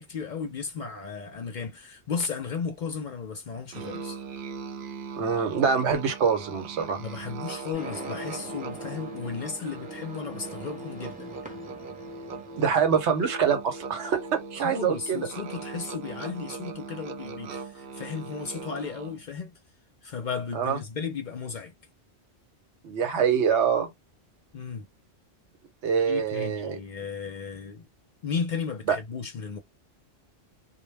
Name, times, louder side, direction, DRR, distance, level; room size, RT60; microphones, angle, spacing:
voice 1, 0.0-4.2 7.0-11.4 14.6-19.5 20.0-21.7 24.5-24.9 26.1-27.9 28.2-29.6, left 5 dB, 55° left, 0.6 m, -35 dB
Musical instrument, 3.7-19.3, right 4 dB, 60° right, 0.7 m, -40 dB
voice 2, 5.2-7.0 12.6-14.2 14.5-15.2 20.5-20.8 22.8-23.9 25.8-26.8 28.9-29.0, right 7 dB, 85° right, 1.1 m, -24 dB
sound 1, 7.7-13.1, right 1 dB, 10° right, 0.8 m, -44 dB
2.2 x 2.1 x 3.2 m
omnidirectional pair, 1.1 m